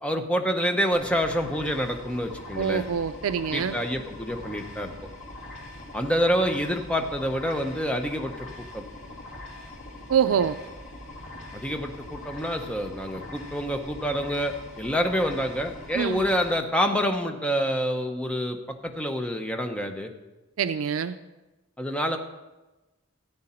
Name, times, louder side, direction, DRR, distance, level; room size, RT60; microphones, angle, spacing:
voice 1, 0.0-2.8 3.5-4.9 5.9-8.5 8.7-8.8 11.5-20.1 21.8-22.2, equal, 5° left, 4 dB, 0.7 m, -27 dB
sound 1, 0.9-16.5, left 1 dB, 70° left, 2.5 m, -42 dB
voice 2, 2.6-3.7 10.1-10.6 16.0-16.2 20.6-21.1, right 7 dB, 80° right, 11 dB, 0.4 m, -25 dB
13.5 x 9.5 x 4.3 m, 1.1 s
head